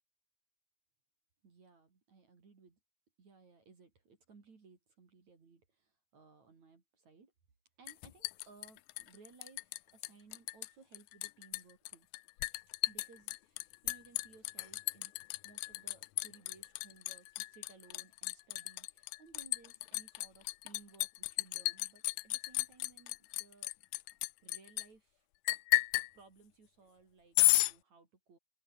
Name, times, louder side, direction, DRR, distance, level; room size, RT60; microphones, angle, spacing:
voice 1, 1.4-2.8 3.2-7.3 7.8-12.1 12.9-23.7 24.4-25.3 26.1-28.4, right 4 dB, 45° right, 5.3 m, -61 dB
Liquid, 7.9-9.8 10.0-10.7 10.9-24.9 25.5-26.1 27.4-27.7, left 22 dB, 80° left, 2.1 m, -33 dB
open air
omnidirectional pair, 4.4 m